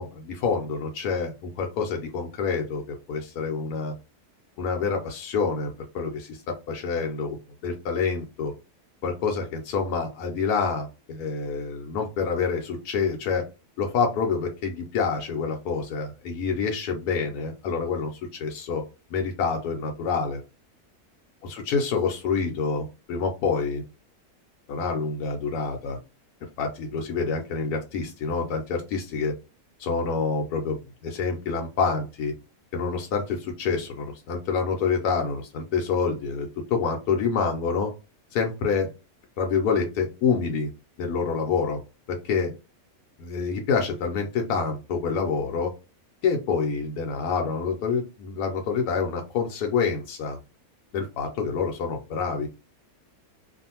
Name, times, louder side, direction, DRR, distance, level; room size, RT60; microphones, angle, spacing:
voice 1, 0.0-3.9 4.6-7.4 7.6-8.5 9.0-13.5 13.8-18.8 19.1-20.4 21.4-23.8 24.7-26.0 26.6-29.3 29.8-32.3 32.7-37.9 38.3-38.9 39.4-40.7 41.0-41.8 42.1-42.5 43.2-45.7 46.2-50.4 50.9-52.5, left 5 dB, 85° left, 2 dB, 1.1 m, -27 dB
2.6 x 2.4 x 2.8 m, 0.29 s
omnidirectional pair, 1.6 m